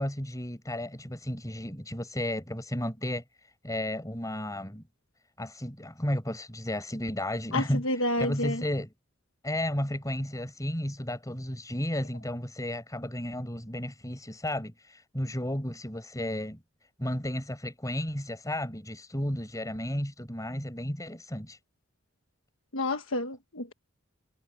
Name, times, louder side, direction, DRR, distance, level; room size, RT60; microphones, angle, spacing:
voice 1, 0.0-3.2 3.6-4.8 5.4-8.9 9.4-16.6 17.0-21.6, left 1 dB, 15° left, 5.6 m, -33 dB
voice 2, 7.5-8.6 22.7-23.7, left 1 dB, 75° left, 1.4 m, -29 dB
head